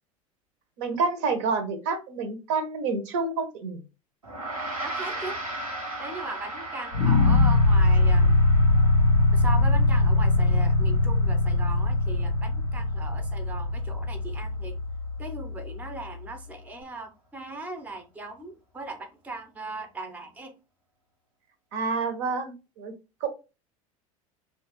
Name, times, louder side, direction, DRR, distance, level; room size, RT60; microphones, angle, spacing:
voice 1, 0.8-3.8 21.7-22.9 23.2-23.3, right 4 dB, 55° right, 0.7 m, -28 dB
Gong, 4.2-13.9, right 2 dB, 85° right, 1.1 m, -38 dB
voice 2, 4.8-5.4 6.0-8.4 9.3-14.7 15.2-20.5, right 2 dB, 10° right, 0.6 m, -38 dB
sound 1, 6.9-16.0, left 2 dB, 85° left, 0.5 m, -22 dB
3.0 x 2.3 x 2.9 m
figure-of-eight pair, 75°, 18 cm